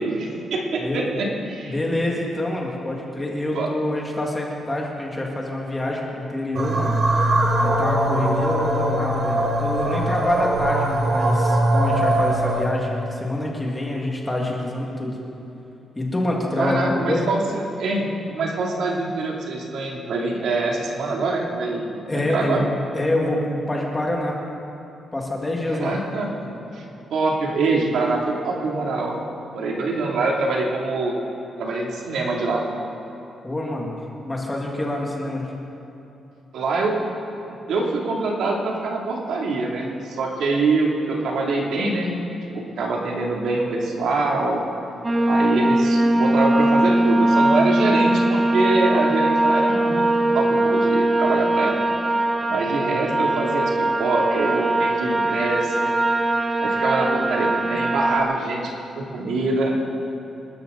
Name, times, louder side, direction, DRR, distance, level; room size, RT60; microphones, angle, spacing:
voice 1, 0.0-1.8 3.5-3.7 16.6-22.6 25.7-26.8 27.1-29.2 29.5-31.2 31.6-32.6 36.5-37.0 37.4-42.1 42.5-44.6 45.3-50.1 50.3-51.8 52.5-55.9 56.6-59.9, right 3 dB, 70° right, -2 dB, 2.9 m, -24 dB
voice 2, 1.6-7.0 7.6-15.2 16.0-17.3 22.1-22.6 22.9-24.4 25.1-25.9 33.4-34.0 34.2-35.5, left 1 dB, 15° left, -2 dB, 2.1 m, -26 dB
sound 1, 6.5-12.7, right 1 dB, 40° right, 1.8 m, -21 dB
sound 2, 45.0-58.2, right 1 dB, 15° right, 0.8 m, -20 dB
27.0 x 13.0 x 4.0 m, 2.9 s
wide cardioid pair, 175°, 0 cm